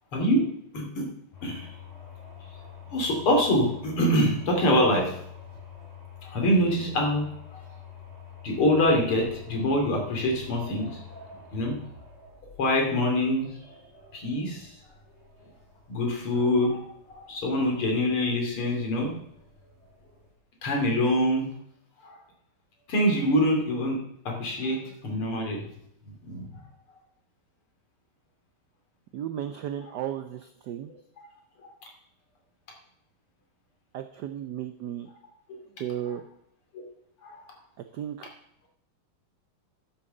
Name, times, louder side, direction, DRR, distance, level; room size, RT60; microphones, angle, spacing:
voice 1, 0.1-0.4 0.7-1.1 1.4-1.7 2.9-5.1 6.2-7.3 7.5-7.6 8.4-11.0 11.5-11.7 12.6-13.5 14.1-14.7 15.9-16.8 17.1-19.1 20.6-21.5 22.0-22.2 22.9-24.0 24.3-25.6 26.2-26.4 36.7-36.8 37.2-37.4, left 1 dB, 75° left, 0 dB, 3.5 m, -25 dB
sound 1, 1.3-20.3, left 7 dB, 35° left, 3.3 m, -48 dB
voice 2, 29.1-30.9 33.9-35.1 35.8-36.2 37.9-38.3, right 10 dB, 75° right, 9 dB, 1.0 m, -34 dB
11.5 x 7.1 x 6.6 m, 0.74 s
omnidirectional pair, 2.4 m